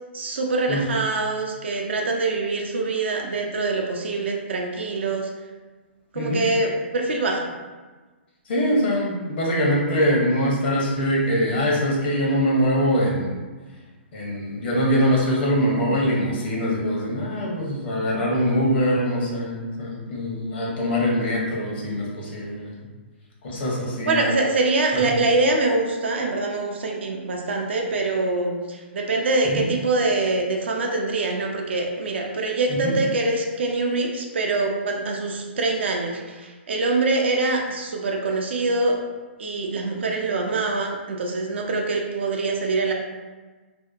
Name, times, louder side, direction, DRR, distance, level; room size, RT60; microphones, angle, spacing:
voice 1, 0.1-5.3 6.1-7.5 24.1-39.0 39.4-42.9, right 3 dB, 70° right, 1 dB, 0.4 m, -24 dB
voice 2, 8.5-13.4 14.1-22.8 23.4-24.2 24.9-25.0 29.5-29.6 32.7-32.9, equal, 60° left, -3 dB, 0.8 m, -23 dB
2.7 x 2.1 x 2.3 m, 1.3 s
hypercardioid pair, 130°, 6 cm